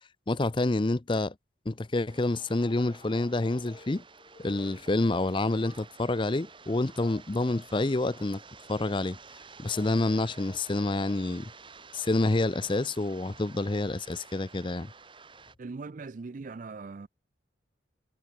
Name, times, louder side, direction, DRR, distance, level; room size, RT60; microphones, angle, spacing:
voice 1, 0.3-1.3 1.7-4.0 4.4-8.4 8.7-9.2 9.6-11.5 11.9-14.9, left 2 dB, 25° left, 0.6 m, -28 dB
sound 1, 2.1-15.5, right 4 dB, 25° right, 3.2 m, -51 dB
voice 2, 15.6-17.1, right 4 dB, 45° right, 0.4 m, -40 dB
head